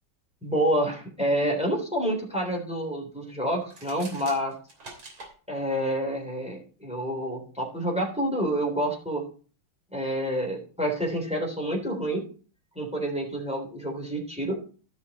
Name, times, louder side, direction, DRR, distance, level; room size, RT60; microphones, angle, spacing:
voice 1, 0.4-4.5 5.5-9.2 9.9-12.3 12.7-14.6, equal, 5° right, 0 dB, 3.3 m, -28 dB
sound 1, 3.6-5.3, right 2 dB, 75° right, 3.8 m, -44 dB
15.0 x 6.3 x 4.2 m, 0.39 s
omnidirectional pair, 2.3 m